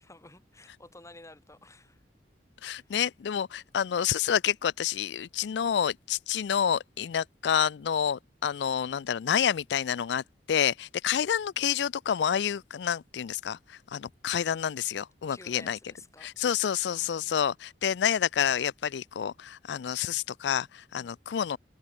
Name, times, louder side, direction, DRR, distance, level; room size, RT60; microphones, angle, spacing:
voice 1, 0.0-2.0 2.8-2.9 11.1-11.2 15.3-16.3 16.9-17.4, left 2 dB, 20° left, 4.6 m, -52 dB
voice 2, 2.6-15.8 16.2-21.6, left 8 dB, 75° left, 0.4 m, -28 dB
head